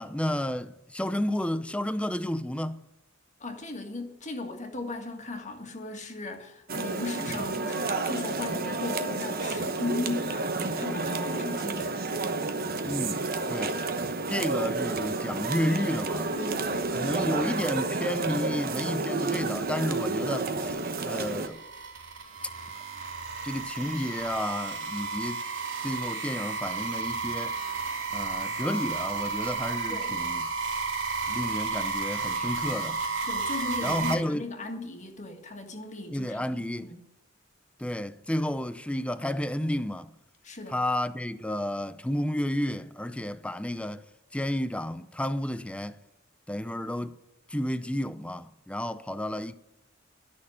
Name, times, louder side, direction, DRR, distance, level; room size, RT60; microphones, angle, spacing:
voice 1, 0.0-2.8 12.8-13.8 14.3-16.3 16.9-21.6 23.4-25.5 25.8-27.6 28.1-30.5 31.3-33.0 33.8-34.5 36.1-36.9 37.8-40.1 40.7-44.0 44.3-46.0 46.5-47.2 47.5-49.6, left 1 dB, 5° left, 0.5 m, -31 dB
voice 2, 3.4-12.0 16.3-16.9 29.9-30.2 33.2-37.0 40.4-40.8, left 2 dB, 40° left, 1.8 m, -37 dB
sound 1, 6.7-21.5, right 3 dB, 50° right, 1.0 m, -30 dB
sound 2, 20.7-34.1, right 4 dB, 85° right, 3.1 m, -32 dB
12.5 x 6.5 x 9.4 m
head